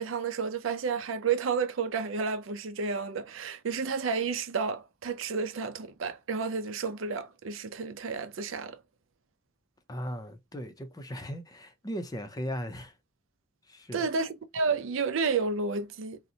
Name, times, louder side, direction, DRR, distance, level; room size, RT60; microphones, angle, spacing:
voice 1, 0.0-8.8 13.9-16.2, right 5 dB, 75° right, 0.5 m, -31 dB
voice 2, 9.9-12.9 13.7-14.1, equal, 20° left, 0.5 m, -37 dB
3.9 x 2.1 x 2.7 m
head